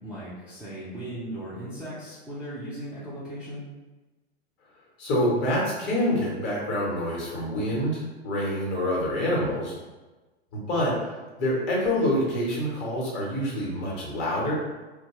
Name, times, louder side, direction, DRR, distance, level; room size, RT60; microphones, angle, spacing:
voice 1, 0.0-3.6, right 1 dB, 5° right, -12 dB, 0.5 m, -37 dB
voice 2, 5.0-9.7 10.5-11.1 11.4-14.5, left 1 dB, 35° left, -5 dB, 1.1 m, -26 dB
2.9 x 2.2 x 2.9 m, 1.2 s
figure-of-eight pair, 100°, 33 cm